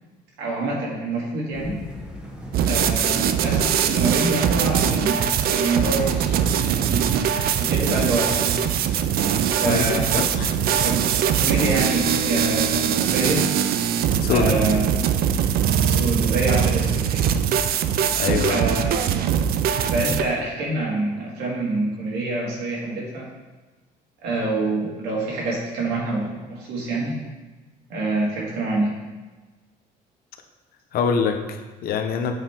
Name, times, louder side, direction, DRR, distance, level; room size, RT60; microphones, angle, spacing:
voice 1, 0.4-1.8 2.7-5.2 5.5-8.6 9.6-10.2 10.8-11.0 11.4-13.5 14.3-15.0 15.8-17.2 18.4-19.2 19.9-23.2 24.2-27.2 27.9-28.9, right 2 dB, 90° right, -4 dB, 2.1 m, -26 dB
sound 1, 1.5-12.8, equal, 5° right, 1.1 m, -37 dB
sound 2, 2.5-20.2, right 8 dB, 65° right, 0.4 m, -22 dB
voice 2, 9.6-10.5 14.2-14.6 18.1-18.7 30.9-32.3, left 6 dB, 65° left, 5 dB, 0.8 m, -24 dB
8.0 x 3.7 x 4.4 m, 1.2 s
cardioid pair, 110°, 17 cm